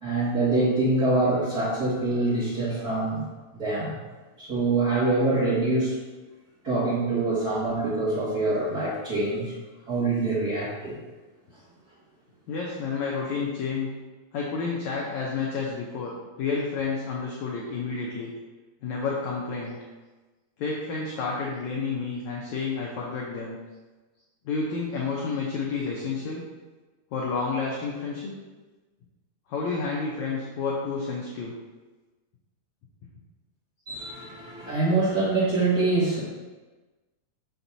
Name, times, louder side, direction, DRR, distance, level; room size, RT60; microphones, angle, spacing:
voice 1, 0.0-3.2 3.5-4.0 4.4-6.0 6.6-9.5 9.9-10.9 33.9-36.2, right 2 dB, 35° right, -11 dB, 1.8 m, -25 dB
voice 2, 12.5-13.9 14.3-18.3 18.8-19.8 20.6-23.6 24.5-26.4 27.1-28.3 29.5-31.5, left 4 dB, 80° left, -3 dB, 1.7 m, -30 dB
7.0 x 5.9 x 2.7 m, 1.2 s
omnidirectional pair, 4.3 m